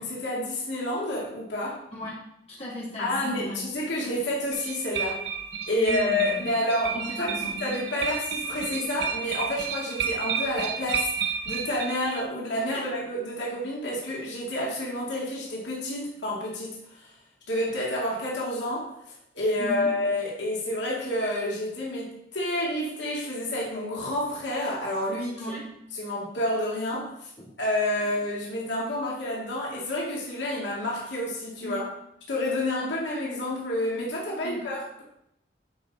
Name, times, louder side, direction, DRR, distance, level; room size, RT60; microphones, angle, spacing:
voice 1, 0.0-1.8 3.0-3.5 3.7-5.2 5.7-7.3 7.6-17.1 17.5-25.4 26.0-27.1 27.6-31.8 32.3-35.0, left 1 dB, 80° left, -4 dB, 2.3 m, -29 dB
voice 2, 1.9-3.6 5.7-6.5 6.9-7.8 12.7-12.9 19.6-19.9 25.3-25.7 26.9-27.0 27.4-27.5 27.9-28.1 31.6-31.8 34.4-34.7, equal, 35° left, -8 dB, 3.1 m, -37 dB
sound 1, 4.5-12.2, right 6 dB, 75° right, 0.8 m, -32 dB
10.5 x 5.1 x 4.1 m, 0.77 s
head